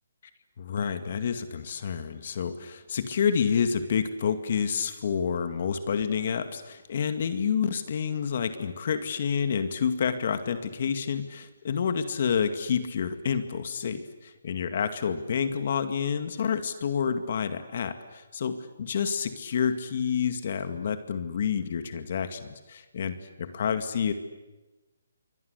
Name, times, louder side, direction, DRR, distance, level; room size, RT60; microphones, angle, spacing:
voice 1, 0.6-24.1, left 7 dB, 50° left, 9 dB, 2.2 m, -29 dB
28.0 x 24.0 x 8.2 m, 1.1 s
hypercardioid pair, 160°, 0 cm